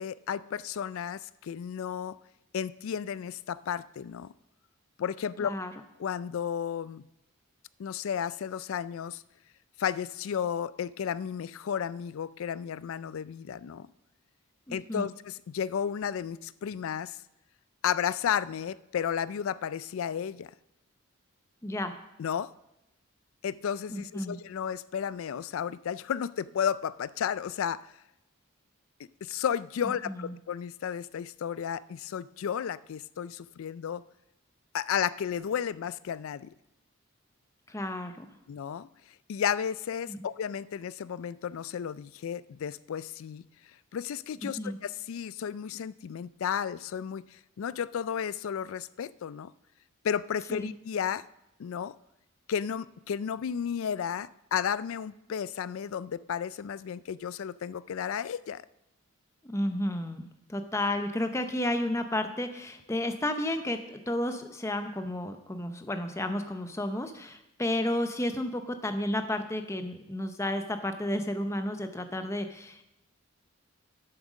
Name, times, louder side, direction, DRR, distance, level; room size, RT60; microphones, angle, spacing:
voice 1, 0.0-2.2 2.5-4.3 5.0-5.5 6.0-7.0 7.8-9.2 9.8-13.9 14.7-17.2 17.8-20.5 22.2-22.5 23.4-27.9 29.2-34.0 34.7-36.5 38.5-38.9 39.3-43.4 43.9-49.5 50.0-51.2 51.6-51.9 52.5-58.6, left 8 dB, 70° left, 19 dB, 0.3 m, -33 dB
voice 2, 5.4-5.7 14.7-15.1 21.6-22.0 23.9-24.4 30.1-30.4 37.7-38.3 40.1-40.2 44.6-44.8 50.5-50.7 59.4-72.8, left 1 dB, 15° left, 7 dB, 0.7 m, -32 dB
8.8 x 7.9 x 6.2 m, 0.87 s
head